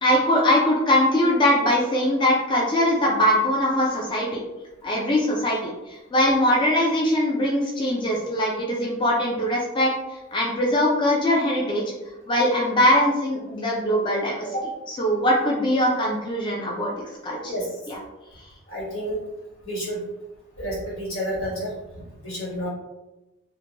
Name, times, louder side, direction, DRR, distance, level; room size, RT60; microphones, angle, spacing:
voice 1, 0.0-4.4 4.8-9.9 10.3-11.8 12.3-14.5 14.9-16.9 17.2-17.5 17.9-18.0, left 1 dB, 25° left, -3 dB, 0.4 m, -21 dB
voice 2, 18.7-19.2 19.6-20.0 20.6-22.7, equal, 90° left, -7 dB, 1.4 m, -30 dB
2.8 x 2.1 x 2.8 m, 1.0 s
head